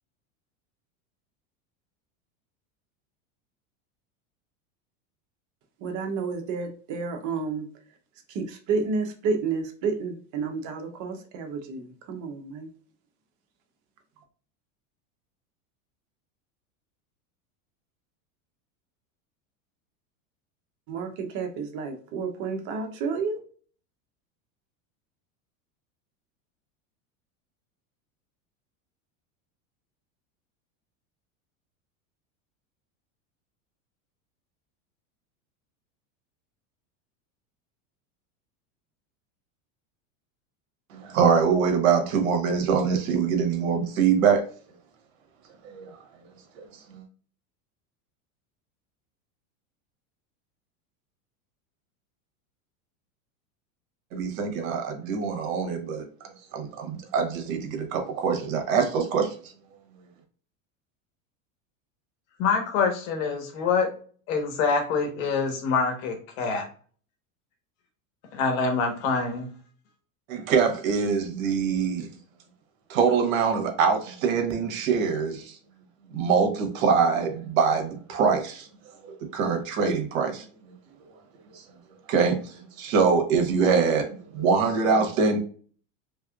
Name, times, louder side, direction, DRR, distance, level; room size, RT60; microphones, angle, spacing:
voice 1, 5.8-7.7 8.3-12.7 20.9-23.4, right 4 dB, 45° right, 5 dB, 0.9 m, -30 dB
voice 2, 40.9-44.5 45.7-46.0 46.9-47.0 54.1-56.1 56.5-59.3 70.3-72.1 72.9-75.6 76.1-78.7 79.0-80.4 81.5-81.6 82.1-84.1 84.3-85.4, right 6 dB, 75° right, 5 dB, 1.2 m, -24 dB
voice 3, 62.4-63.9 64.3-66.6 68.3-69.5, left 5 dB, 65° left, 4 dB, 1.4 m, -25 dB
3.4 x 3.3 x 2.3 m, 0.44 s
supercardioid pair, 130°, 41 cm